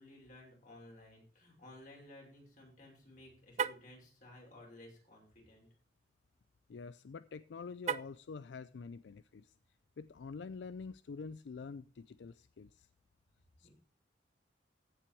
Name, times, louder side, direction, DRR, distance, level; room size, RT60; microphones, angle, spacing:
voice 1, 0.0-5.7 13.6-13.7, left 1 dB, 45° left, 5.5 m, -56 dB
Car, 3.5-3.9 7.8-8.3, right 7 dB, 40° right, 0.4 m, -36 dB
voice 2, 6.7-9.5 10.0-12.9 13.6-13.7, left 5 dB, 80° left, 0.4 m, -47 dB
15.5 x 5.9 x 4.6 m
head